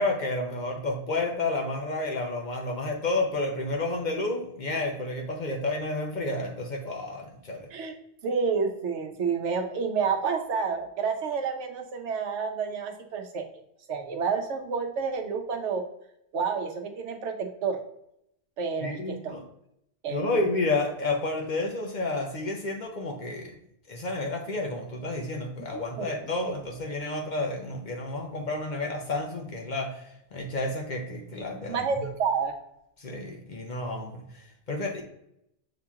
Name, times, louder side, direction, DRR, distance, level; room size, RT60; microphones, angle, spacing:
voice 1, 0.0-7.7 18.8-19.4 20.1-23.5 23.9-32.1 33.0-35.0, left 2 dB, 50° left, 1 dB, 0.7 m, -31 dB
voice 2, 8.2-13.4 13.9-15.8 16.3-17.8 18.6-19.4 20.0-20.4 26.0-26.1 31.7-32.5, right 5 dB, 85° right, 4 dB, 1.0 m, -29 dB
7.0 x 2.9 x 2.3 m, 0.77 s
omnidirectional pair, 1.2 m